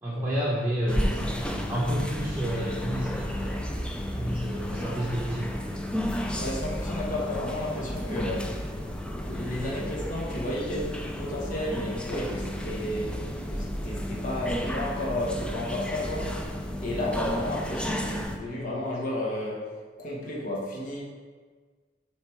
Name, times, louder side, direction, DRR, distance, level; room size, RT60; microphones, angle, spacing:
voice 1, 0.0-1.3 1.7-3.6 4.1-5.6, equal, 10° right, -8 dB, 1.0 m, -30 dB
sound 1, 0.9-18.4, equal, 5° left, 0.4 m, -32 dB
voice 2, 6.3-8.6 9.1-13.2 13.5-19.7 20.0-21.0, left 1 dB, 45° left, -4 dB, 1.3 m, -32 dB
6.8 x 3.4 x 4.5 m, 1.5 s
head